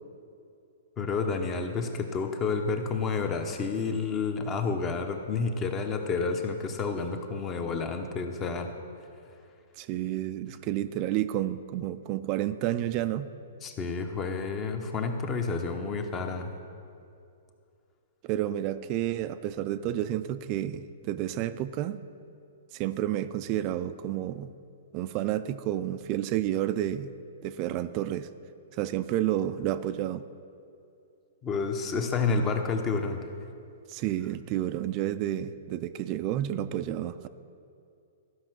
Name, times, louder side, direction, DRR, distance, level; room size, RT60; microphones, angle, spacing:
voice 1, 1.0-8.7 13.6-16.5 31.4-33.2, left 4 dB, 20° left, 6 dB, 0.9 m, -30 dB
voice 2, 9.8-13.3 18.2-22.0 22.7-24.5 24.9-27.1 27.4-28.3 28.7-30.2 33.9-37.3, right 12 dB, 35° right, 13 dB, 0.4 m, -30 dB
13.0 x 5.5 x 6.1 m, 2.6 s
hypercardioid pair, 150°, 0 cm